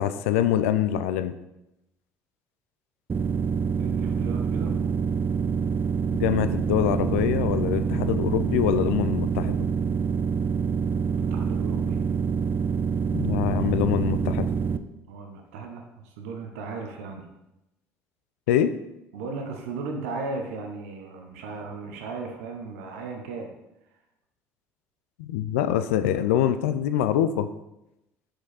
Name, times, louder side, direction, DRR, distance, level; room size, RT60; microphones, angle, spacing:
voice 1, 0.0-1.3 6.2-9.6 13.1-14.5 18.5-18.7 25.2-27.5, left 10 dB, 80° left, 11 dB, 0.3 m, -24 dB
sound 1, 3.1-14.8, right 6 dB, 30° right, 0.4 m, -26 dB
voice 2, 3.8-4.8 11.1-12.0 15.1-17.3 19.1-23.5, right 4 dB, 80° right, 3 dB, 0.8 m, -36 dB
6.1 x 5.0 x 4.1 m, 0.89 s
hypercardioid pair, 60°, 7 cm